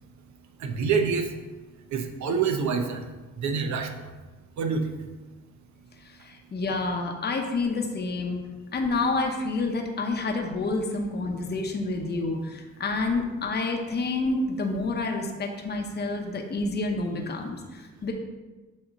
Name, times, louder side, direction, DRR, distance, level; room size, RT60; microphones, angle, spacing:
voice 1, 0.6-1.3 1.9-3.0 3.3-4.1 4.6-5.0, right 5 dB, 70° right, 5 dB, 0.9 m, -27 dB
voice 2, 6.0-8.4 8.7-18.1, left 3 dB, 35° left, 2 dB, 0.9 m, -28 dB
7.3 x 2.9 x 5.1 m, 1.2 s
cardioid pair, 90°, 30 cm